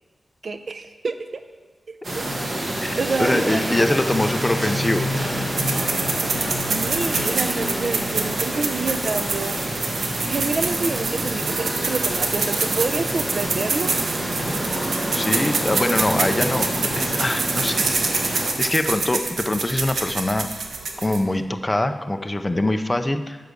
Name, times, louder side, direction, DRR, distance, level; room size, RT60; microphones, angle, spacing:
voice 1, 0.4-1.2 2.2-2.3 3.0-3.7 6.2-9.6 10.2-13.9, right 3 dB, 50° right, 8 dB, 0.5 m, -28 dB
sound 1, 2.0-18.5, right 1 dB, 30° right, 1.4 m, -27 dB
voice 2, 2.8-5.1 14.9-20.5 21.0-23.4, left 1 dB, 15° left, 7 dB, 0.4 m, -24 dB
sound 2, 5.6-21.4, right 4 dB, 80° right, 0.9 m, -27 dB
10.0 x 4.7 x 6.6 m, 1.4 s
wide cardioid pair, 170°, 0 cm